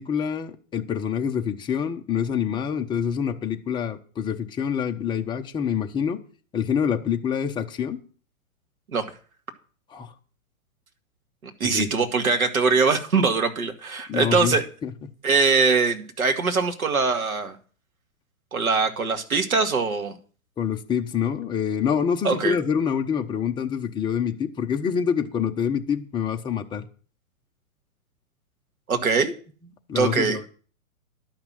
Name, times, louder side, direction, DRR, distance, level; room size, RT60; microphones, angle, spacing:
voice 1, 0.0-6.2 6.5-8.0 9.9-10.1 11.6-11.9 14.1-14.6 14.8-14.9 20.6-26.9 29.9-30.5, left 7 dB, 10° left, 0.8 m, -26 dB
voice 2, 11.4-14.7 15.2-17.6 18.5-20.2 22.2-22.6 28.9-29.3 30.0-30.4, right 4 dB, 85° right, 2.0 m, -22 dB
11.5 x 6.0 x 7.5 m
hypercardioid pair, 130°, 41 cm